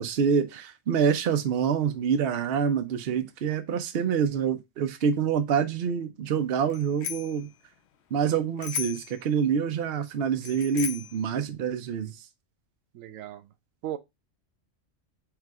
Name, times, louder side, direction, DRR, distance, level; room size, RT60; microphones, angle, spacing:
voice 1, 0.0-7.5 8.1-12.2, right 7 dB, 60° right, 0.8 m, -26 dB
Bicycle bell, 6.7-7.4 8.6-9.2 10.4-11.2, left 8 dB, 65° left, 0.8 m, -35 dB
voice 2, 12.9-13.5 13.8-14.0, right 12 dB, 90° right, 1.0 m, -36 dB
4.7 x 2.4 x 4.5 m
omnidirectional pair, 1.3 m